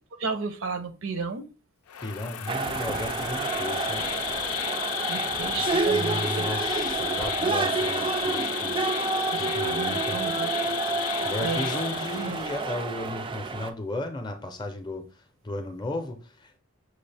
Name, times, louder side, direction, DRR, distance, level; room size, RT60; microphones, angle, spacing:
voice 1, 0.2-1.4 5.1-6.8 7.4-7.6 9.3-10.5 11.4-11.7 12.1-12.4, right 4 dB, 65° right, 8 dB, 0.6 m, -33 dB
Insect, 1.9-12.7, left 11 dB, 90° left, 0.5 m, -33 dB
voice 2, 2.0-4.1 5.9-8.8 9.4-10.2 11.2-15.0 15.4-16.6, left 1 dB, 20° left, 5 dB, 0.6 m, -34 dB
sound 1, 2.5-13.7, right 4 dB, 25° right, 0.3 m, -29 dB
6.2 x 2.4 x 3.3 m, 0.34 s
head